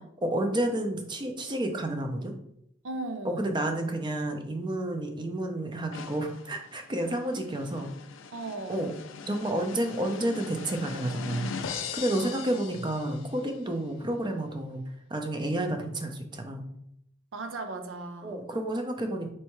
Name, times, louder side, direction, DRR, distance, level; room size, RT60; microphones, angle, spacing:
voice 1, 0.2-2.3 3.2-7.9 8.7-8.9 9.3-11.5 11.9-14.8 15.1-16.7 18.2-19.3, right 1 dB, 25° right, 4 dB, 0.6 m, -30 dB
voice 2, 2.8-3.6 8.3-8.8 12.2-12.4 17.3-18.5, right 2 dB, 90° right, 7 dB, 0.6 m, -37 dB
sound 1, 5.9-13.5, left 6 dB, 85° left, 0.4 m, -41 dB
4.4 x 3.4 x 3.0 m, 0.74 s
head